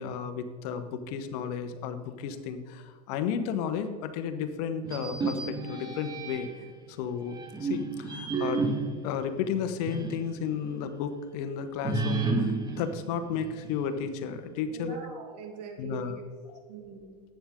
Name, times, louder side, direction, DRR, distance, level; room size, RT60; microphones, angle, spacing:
voice 1, 0.0-6.5 6.9-8.7 9.0-15.0 15.8-16.2 16.5-16.6, left 7 dB, 65° left, 10 dB, 1.2 m, -33 dB
sound 1, 4.8-6.7 7.3-10.3 10.6-10.7 11.8-13.9, right 3 dB, 20° right, 1.6 m, -32 dB
voice 2, 14.7-16.2 16.7-17.1, right 4 dB, 75° right, 2 dB, 2.4 m, -41 dB
13.0 x 8.8 x 3.7 m, 1.6 s
hypercardioid pair, 100°, 21 cm